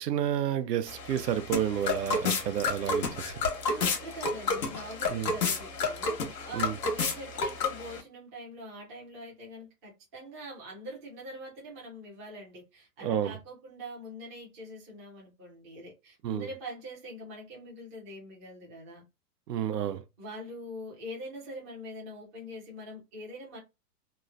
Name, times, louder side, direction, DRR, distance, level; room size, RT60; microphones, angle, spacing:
voice 1, 0.0-3.4 5.1-5.3 6.5-6.8 13.0-13.4 16.2-16.5 19.5-20.0, right 10 dB, 80° right, 0.6 m, -30 dB
sound 1, 0.9-8.0, left 4 dB, 85° left, 1.2 m, -31 dB
voice 2, 3.7-19.0 20.2-23.6, equal, 10° right, 0.3 m, -44 dB
3.0 x 2.0 x 2.4 m
hypercardioid pair, 130°, 48 cm